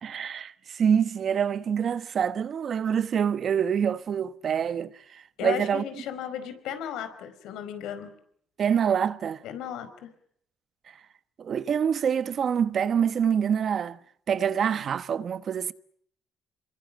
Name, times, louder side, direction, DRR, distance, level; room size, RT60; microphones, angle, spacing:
voice 1, 0.0-5.8 8.6-9.4 11.4-14.0 14.3-15.7, right 7 dB, 55° right, 1.2 m, -26 dB
voice 2, 5.4-8.1 9.4-10.1, left 9 dB, 80° left, 4.5 m, -35 dB
27.5 x 23.0 x 8.8 m
cardioid pair, 85°, 0 cm